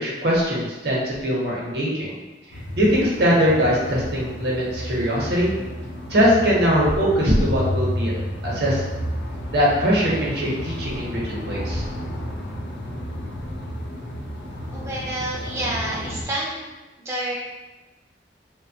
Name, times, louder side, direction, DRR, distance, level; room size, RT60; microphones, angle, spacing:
voice 1, 0.0-2.1 2.8-5.5 6.1-8.1 8.4-8.8 9.5-11.8, equal, 65° right, -4 dB, 0.8 m, -21 dB
sound 1, 2.5-16.2, equal, 90° left, 0.5 m, -31 dB
voice 2, 14.7-16.7 17.0-17.3, right 1 dB, 15° right, -5 dB, 0.3 m, -28 dB
2.8 x 2.2 x 2.7 m, 1.1 s
head